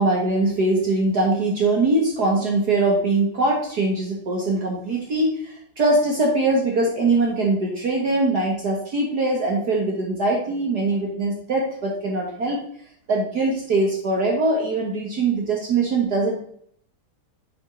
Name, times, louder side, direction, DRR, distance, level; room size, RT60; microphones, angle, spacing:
voice 1, 0.0-12.6 13.1-16.3, right 2 dB, 50° right, -1 dB, 1.9 m, -22 dB
9.6 x 6.2 x 3.8 m, 0.64 s
omnidirectional pair, 2.4 m